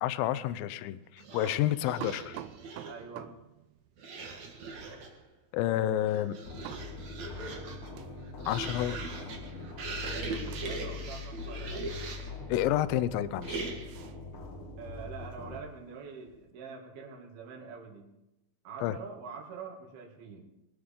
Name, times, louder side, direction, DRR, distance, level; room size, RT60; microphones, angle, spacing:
voice 1, 0.0-2.4 5.5-6.4 8.5-9.0 12.5-13.7 18.8-19.0, left 12 dB, 75° left, 15 dB, 2.3 m, -29 dB
sound 1, 1.2-3.1 4.0-5.2 5.9-12.4 13.4-14.1, right 3 dB, 50° right, 2.8 m, -41 dB
sound 2, 2.0-9.4 9.7-12.4 12.8-13.1 13.4-16.5, right 12 dB, 90° right, 2.8 m, -49 dB
voice 2, 2.8-3.3 10.4-12.5 14.8-18.1 18.6-20.5, right 5 dB, 70° right, 0 dB, 4.3 m, -45 dB
sound 3, 6.4-15.6, left 4 dB, 50° left, 1.6 m, -42 dB
23.0 x 13.0 x 3.8 m, 0.91 s
omnidirectional pair, 4.6 m